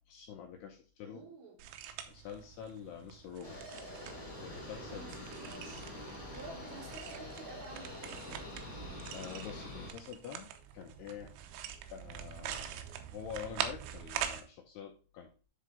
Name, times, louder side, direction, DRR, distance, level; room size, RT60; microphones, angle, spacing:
voice 1, 0.0-1.3 2.1-3.6 4.4-5.0 9.1-11.3 11.9-12.9 13.1-15.3, left 8 dB, 80° left, 3 dB, 2.4 m, -46 dB
voice 2, 1.0-1.6 4.9-8.4, right 2 dB, 50° right, -6 dB, 5.3 m, -51 dB
sound 1, 1.6-14.4, right 9 dB, 80° right, 2.9 m, -44 dB
sound 2, 3.4-9.9, left 1 dB, 10° left, 1.9 m, -45 dB
10.0 x 4.3 x 3.8 m, 0.35 s
omnidirectional pair, 5.4 m